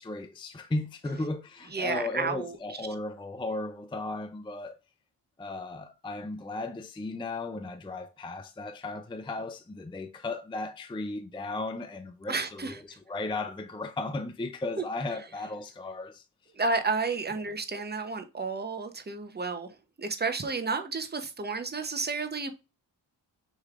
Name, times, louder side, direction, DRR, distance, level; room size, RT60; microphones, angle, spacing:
voice 1, 0.0-4.8 5.4-12.8 13.1-16.2, left 2 dB, 10° left, 0.5 m, -35 dB
voice 2, 1.7-2.8 12.3-13.0 16.5-22.5, right 4 dB, 20° right, 0.8 m, -32 dB
6.4 x 3.2 x 2.5 m
cardioid pair, 60°, 45 cm